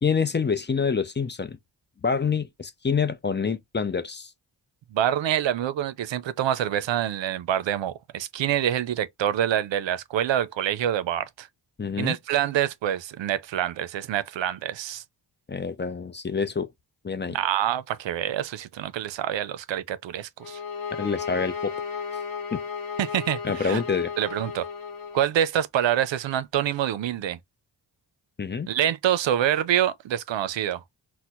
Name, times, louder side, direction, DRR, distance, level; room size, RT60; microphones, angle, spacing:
voice 1, 0.0-1.6 2.0-4.3 11.8-12.2 15.5-16.7 17.0-17.4 20.9-21.7 22.5-22.6 23.4-24.1 28.4-28.7, left 5 dB, 25° left, 0.5 m, -27 dB
voice 2, 4.9-11.5 12.0-15.0 17.3-20.6 23.0-23.8 24.2-24.7 25.1-27.4 28.7-30.8, right 11 dB, 85° right, 0.5 m, -26 dB
sound 1, 20.4-25.3, left 6 dB, 50° left, 0.9 m, -34 dB
4.2 x 2.1 x 2.4 m
cardioid pair, 65°, 43 cm